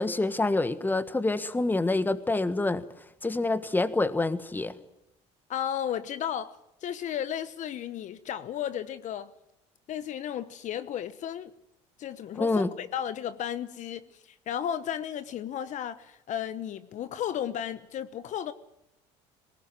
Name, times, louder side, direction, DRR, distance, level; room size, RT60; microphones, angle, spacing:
voice 1, 0.0-2.8 3.2-4.7 12.4-12.7, left 2 dB, 10° left, 1.4 m, -27 dB
voice 2, 5.5-6.5 6.8-9.3 9.9-11.5 12.0-18.5, left 10 dB, 55° left, 1.1 m, -34 dB
20.5 x 18.5 x 9.2 m
supercardioid pair, 85°, 15 cm